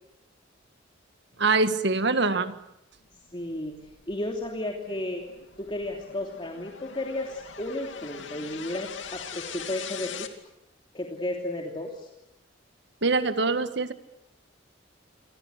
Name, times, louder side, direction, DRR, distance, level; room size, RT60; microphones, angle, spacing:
voice 1, 1.4-2.5 13.0-13.9, right 3 dB, 60° right, 11 dB, 1.7 m, -24 dB
sound 1, 3.3-10.3, left 7 dB, 75° left, 2.5 m, -42 dB
voice 2, 3.3-5.2 5.6-10.3 10.9-12.1, left 1 dB, 25° left, 1 dB, 3.0 m, -33 dB
29.0 x 25.0 x 8.2 m, 0.83 s
head